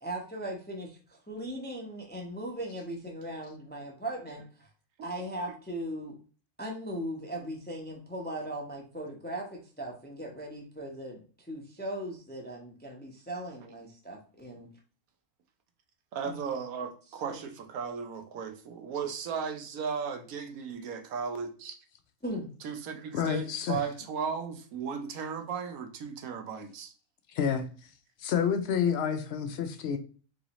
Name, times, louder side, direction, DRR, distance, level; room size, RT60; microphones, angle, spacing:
voice 1, 0.0-1.0 1.3-4.4 5.0-6.2 6.6-11.2 11.5-14.7 16.2-16.4 17.3-17.4 22.2-22.5, right 1 dB, 10° left, 0.5 m, -38 dB
voice 2, 5.0-5.3 16.1-21.8 22.6-26.9, right 6 dB, 70° right, 1.1 m, -36 dB
voice 3, 23.1-23.8 27.3-27.9 28.2-30.0, left 7 dB, 65° left, 0.6 m, -29 dB
3.9 x 3.8 x 3.0 m
omnidirectional pair, 1.6 m